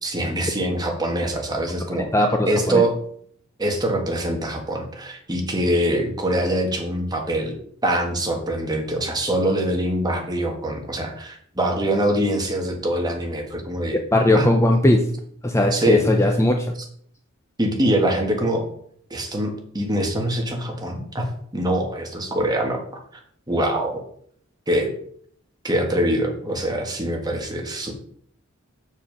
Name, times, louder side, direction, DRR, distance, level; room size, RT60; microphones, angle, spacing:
voice 1, 0.0-2.1 2.4-3.0 3.6-14.0 14.3-14.5 15.7-16.0 17.6-18.7 19.1-21.3 21.5-22.8 23.5-24.0 24.7-24.9 25.6-27.9, right 1 dB, 20° right, 2 dB, 1.6 m, -24 dB
voice 2, 2.1-2.8 14.1-15.0 15.4-16.8, left 1 dB, 15° left, 3 dB, 0.6 m, -18 dB
7.5 x 6.4 x 5.2 m, 0.63 s
head